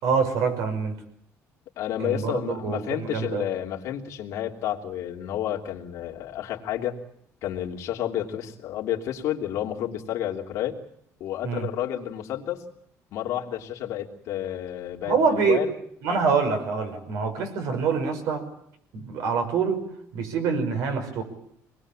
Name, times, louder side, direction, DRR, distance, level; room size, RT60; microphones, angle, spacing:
voice 1, 0.0-0.9 2.0-3.4 11.4-11.7 15.1-15.7 16.0-18.5 18.9-19.9 20.1-21.2, right 5 dB, 70° right, 7 dB, 5.7 m, -25 dB
voice 2, 1.8-7.0 7.4-10.7 11.2-12.6 13.1-15.7, left 11 dB, 60° left, 1 dB, 3.2 m, -30 dB
26.0 x 20.5 x 8.8 m, 0.68 s
cardioid pair, 175°, 6 cm